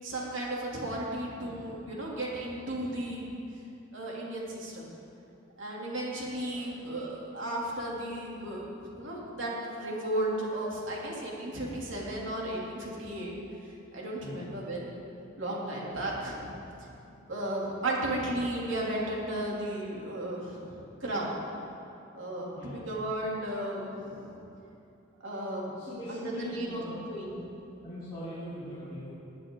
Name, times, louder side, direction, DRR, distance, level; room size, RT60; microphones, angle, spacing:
voice 1, 0.0-3.4 3.9-4.9 5.6-8.6 9.0-13.3 13.9-14.9 15.4-16.5 17.3-21.3 22.1-24.4 25.2-25.7 26.1-26.8 27.1-27.4, right 1 dB, 70° right, -4 dB, 2.9 m, -34 dB
voice 2, 14.2-14.5 15.8-16.1 22.5-22.8 25.7-27.0 27.8-29.1, left 1 dB, 25° left, -13 dB, 3.7 m, -41 dB
19.5 x 10.5 x 3.8 m, 2.8 s
head